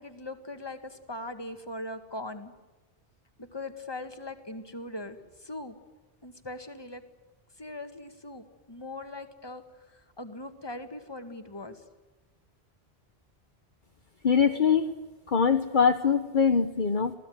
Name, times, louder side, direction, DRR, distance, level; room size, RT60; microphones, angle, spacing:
voice 1, 0.0-2.5 3.4-5.8 6.2-7.0 7.6-11.8, left 2 dB, 25° left, 7 dB, 1.9 m, -40 dB
voice 2, 14.2-14.9 15.3-17.1, left 6 dB, 50° left, 6 dB, 1.2 m, -23 dB
27.0 x 18.5 x 9.4 m, 1.2 s
omnidirectional pair, 1.1 m